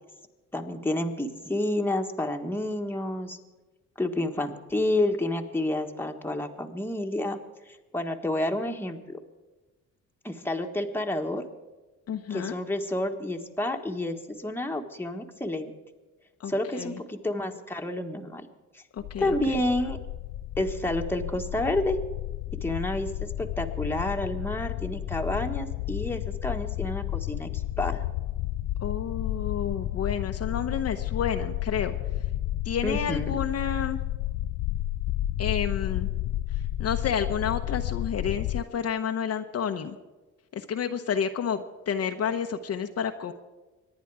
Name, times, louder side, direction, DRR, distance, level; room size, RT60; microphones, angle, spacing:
voice 1, 0.5-3.4 4.0-7.4 7.9-9.2 10.2-11.4 12.3-15.7 16.5-18.4 19.2-20.0 20.6-22.0 22.6-23.1 23.4-28.0 32.8-33.4, left 1 dB, 5° left, 3 dB, 1.5 m, -29 dB
voice 2, 12.1-12.6 16.4-17.0 18.9-19.6 28.8-31.9 32.6-34.0 35.4-36.1 36.5-40.0 40.5-43.3, left 7 dB, 55° left, 6 dB, 0.9 m, -30 dB
sound 1, 19.0-38.6, left 14 dB, 80° left, 0.5 m, -32 dB
24.0 x 10.0 x 4.8 m, 1.2 s
cardioid pair, 90°, 30 cm